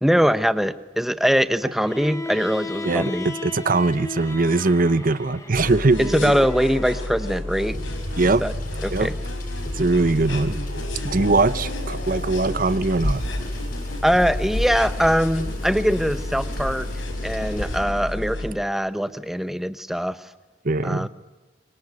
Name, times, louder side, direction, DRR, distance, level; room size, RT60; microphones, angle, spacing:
voice 1, 0.0-3.3 6.0-7.8 8.4-8.5 8.8-9.1 14.0-16.9 17.2-20.3 20.8-21.1, equal, ahead, 0.9 m, -22 dB
Bowed string instrument, 1.8-7.1, left 3 dB, 15° left, 2.4 m, -35 dB
voice 2, 2.8-6.4 8.2-8.4 8.9-9.1 9.7-10.6 11.0-13.2 20.6-21.1, right 3 dB, 45° right, 0.8 m, -21 dB
sound 1, 5.5-18.5, left 1 dB, 70° left, 5.0 m, -30 dB
sound 2, 7.6-17.8, equal, 45° left, 7.8 m, -37 dB
25.5 x 24.5 x 9.6 m
head